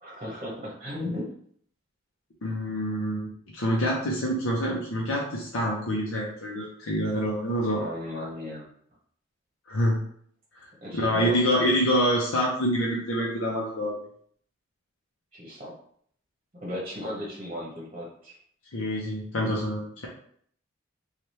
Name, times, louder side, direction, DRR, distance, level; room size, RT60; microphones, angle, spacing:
voice 1, 0.0-1.3 7.8-8.7 10.8-11.4 15.3-15.7 16.6-18.4, left 1 dB, 30° right, -4 dB, 0.9 m, -35 dB
voice 2, 2.4-7.8 9.7-10.0 10.9-13.9 18.7-20.1, equal, 85° left, -3 dB, 0.8 m, -26 dB
3.3 x 2.4 x 4.2 m, 0.62 s
head